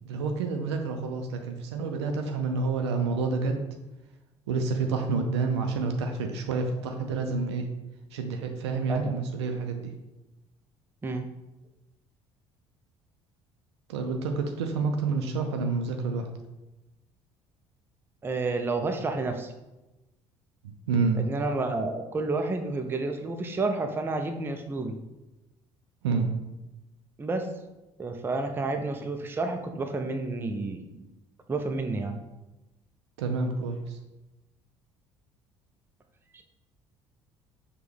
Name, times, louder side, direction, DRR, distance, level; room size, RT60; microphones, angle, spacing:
voice 1, 0.0-3.6 4.5-7.7 8.1-9.9 13.9-16.3 20.6-21.2 26.0-26.3 33.2-34.0, right 4 dB, 70° right, 4 dB, 0.4 m, -29 dB
voice 2, 18.2-19.5 21.2-25.0 27.2-27.5 28.0-30.8 31.5-32.2 36.3-36.4, right 3 dB, 15° right, 5 dB, 0.4 m, -30 dB
6.0 x 2.2 x 3.3 m, 1.0 s
figure-of-eight pair, 55°, 15 cm